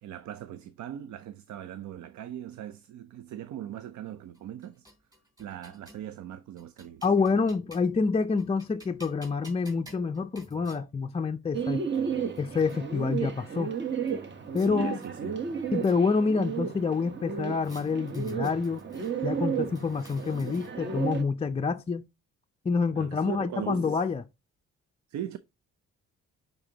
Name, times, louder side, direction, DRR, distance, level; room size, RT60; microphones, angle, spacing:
voice 1, 0.0-4.8 5.4-7.3 14.6-15.4 22.9-24.0 25.1-25.4, right 11 dB, 70° right, 0.6 m, -39 dB
sound 1, 4.3-6.1 6.6-8.0 8.4-10.8 11.6-11.7 11.9-12.8 14.1-14.7 15.0-16.3 17.6-19.1 19.6-20.9, right 1 dB, 15° right, 3.3 m, -53 dB
voice 2, 7.0-11.8 12.4-13.7 14.5-15.0 15.7-18.8 19.2-22.1 22.7-24.2, left 4 dB, 20° left, 0.4 m, -27 dB
Bird, 11.5-21.2, right 7 dB, 35° right, 1.0 m, -33 dB
8.8 x 4.0 x 2.8 m
cardioid pair, 90°, 30 cm